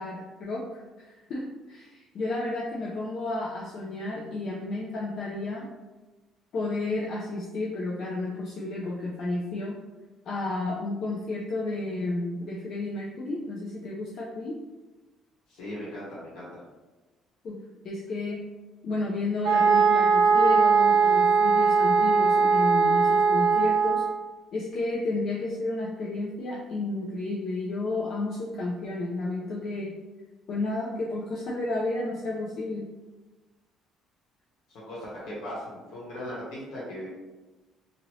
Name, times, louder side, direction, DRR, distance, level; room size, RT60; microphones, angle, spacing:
voice 1, 0.0-5.7 6.5-9.8 10.3-14.6 17.4-17.6 17.8-18.4 18.8-24.0 24.5-29.9 30.5-32.9, left 2 dB, 45° left, -3 dB, 0.4 m, -32 dB
voice 2, 15.5-16.6 34.7-37.1, equal, 85° left, -7 dB, 1.1 m, -38 dB
sound 1, 19.4-24.1, right 5 dB, 50° right, 0.6 m, -20 dB
2.8 x 2.6 x 3.0 m, 1.2 s
cardioid pair, 180°, 0 cm